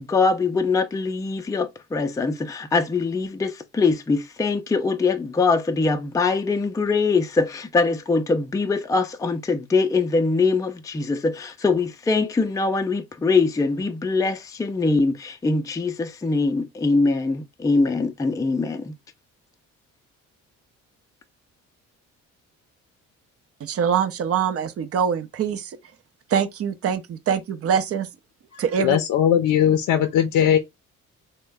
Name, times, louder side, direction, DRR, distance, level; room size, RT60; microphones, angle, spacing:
voice 1, 0.0-18.9, left 3 dB, 10° left, 0.4 m, -23 dB
voice 2, 23.6-25.8 26.3-28.1 28.6-29.0, right 7 dB, 45° right, 0.6 m, -24 dB
voice 3, 28.5-30.6, left 9 dB, 65° left, 0.5 m, -19 dB
3.1 x 2.2 x 3.4 m
cardioid pair, 80°, 33 cm